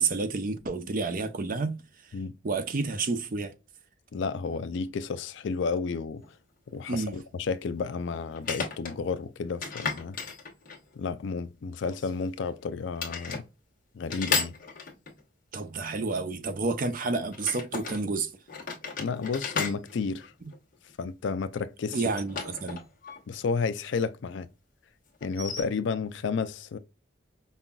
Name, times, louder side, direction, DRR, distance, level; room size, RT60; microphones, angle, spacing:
voice 1, 0.0-1.8 2.4-3.5 6.9-7.1 15.5-18.3 21.9-22.8, right 4 dB, 45° right, 0.5 m, -30 dB
voice 2, 4.1-6.2 6.7-10.2 11.0-13.4 13.9-14.5 19.0-20.3 21.0-22.0 23.3-24.5 25.2-26.8, left 5 dB, 65° left, 0.4 m, -31 dB
sound 1, 6.2-6.3 8.3-9.0 9.6-11.0 11.9-12.6 13.0-13.5 14.1-15.2 17.3-18.0 18.5-20.9 21.9-23.2 23.5-23.6 25.2-25.6, left 5 dB, 45° left, 1.1 m, -34 dB
5.4 x 2.3 x 2.3 m
head